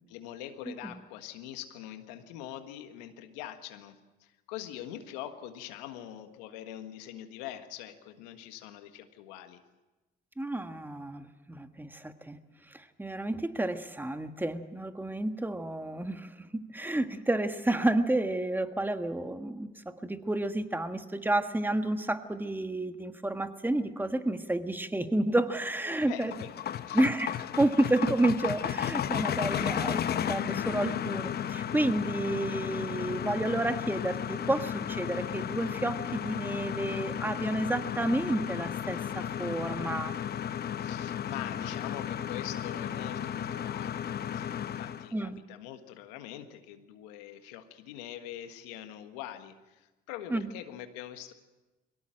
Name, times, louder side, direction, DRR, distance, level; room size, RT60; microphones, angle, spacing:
voice 1, 0.1-9.6 26.1-27.0 40.8-44.1 44.3-51.3, left 11 dB, 85° left, 8 dB, 1.6 m, -44 dB
voice 2, 0.6-1.0 10.4-12.4 12.7-26.3 26.9-40.2 45.1-45.4 50.3-50.5, right 1 dB, 10° right, 8 dB, 1.6 m, -30 dB
sound 1, 25.7-45.1, left 9 dB, 50° left, 1.0 m, -34 dB
22.0 x 17.5 x 7.6 m, 1.1 s
supercardioid pair, 70°, 21 cm